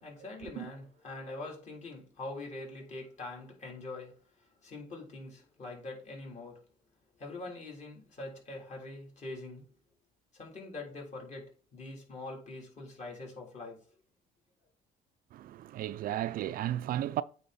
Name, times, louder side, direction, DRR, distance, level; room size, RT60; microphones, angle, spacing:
voice 1, 0.0-4.1 4.6-6.6 7.2-9.7 10.3-13.8, left 2 dB, 45° left, 3.5 m, -44 dB
voice 2, 15.3-17.2, right 12 dB, 60° right, 0.4 m, -34 dB
8.6 x 4.0 x 4.1 m
cardioid pair, 110°, 17 cm